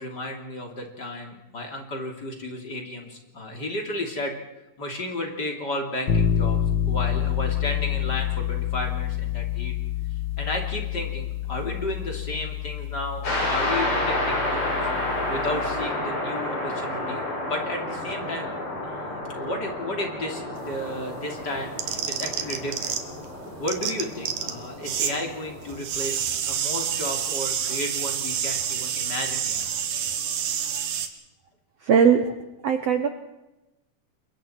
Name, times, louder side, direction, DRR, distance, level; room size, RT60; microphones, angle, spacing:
voice 1, 0.0-4.4 4.8-9.7 10.4-14.8 15.1-18.5 18.8-23.0 23.6-29.7, left 1 dB, 30° left, 2 dB, 3.2 m, -33 dB
sound 1, 6.1-15.9, left 10 dB, 85° left, 1.0 m, -28 dB
sound 2, 13.2-25.8, left 1 dB, 50° left, 7.5 m, -30 dB
sound 3, 20.6-23.3 23.5-25.2 25.4-31.1, right 8 dB, 80° right, 3.2 m, -28 dB
voice 2, 31.8-32.2 32.6-33.1, right 7 dB, 65° right, 7 dB, 1.8 m, -18 dB
29.5 x 22.5 x 4.5 m, 0.98 s
omnidirectional pair, 3.8 m